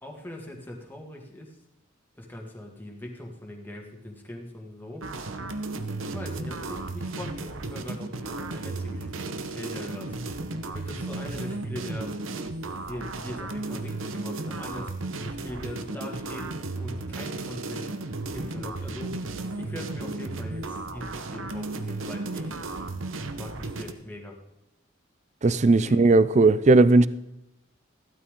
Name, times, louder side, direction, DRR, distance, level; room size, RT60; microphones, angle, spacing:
voice 1, 0.0-1.6 2.2-5.0 6.1-10.2 10.7-12.1 12.9-17.9 18.3-19.2 19.6-22.5 23.4-24.3 25.7-26.1, left 1 dB, 10° left, 2.0 m, -41 dB
sound 1, 5.0-23.9, right 2 dB, 80° right, 1.0 m, -34 dB
voice 2, 25.4-27.1, right 3 dB, 35° right, 0.4 m, -17 dB
15.0 x 12.5 x 3.8 m
head